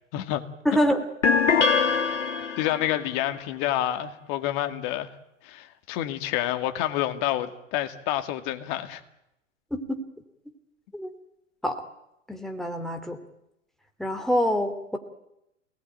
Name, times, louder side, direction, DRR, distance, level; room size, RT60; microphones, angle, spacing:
voice 1, 0.1-0.4 2.6-5.1 5.4-9.0, left 13 dB, 40° left, 2.3 m, -28 dB
voice 2, 0.6-1.0 9.7-10.0 10.9-11.1 11.6-11.8 12.3-13.2 14.0-15.0, equal, ahead, 2.8 m, -25 dB
sound 1, 1.2-3.0, left 5 dB, 65° left, 2.7 m, -23 dB
27.5 x 19.5 x 9.2 m
figure-of-eight pair, 100°, 38 cm